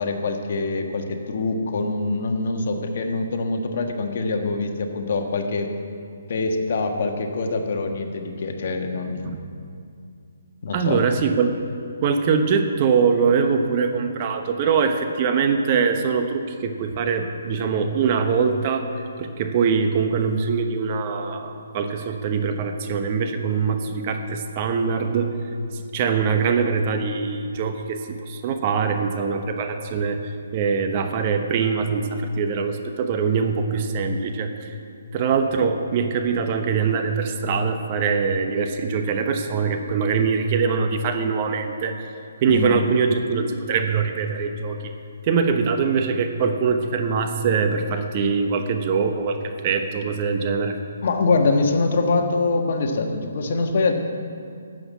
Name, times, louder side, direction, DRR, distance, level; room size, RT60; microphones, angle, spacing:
voice 1, 0.0-5.7 6.3-9.3 10.6-11.0 42.5-42.8 51.0-53.9, left 3 dB, 55° left, 4 dB, 1.5 m, -24 dB
voice 2, 10.7-11.5 12.0-25.3 25.7-34.7 35.1-42.0 42.4-44.9 45.2-50.8, right 5 dB, 35° right, 6 dB, 1.1 m, -23 dB
12.5 x 7.7 x 8.5 m, 2.4 s
hypercardioid pair, 150°, 0 cm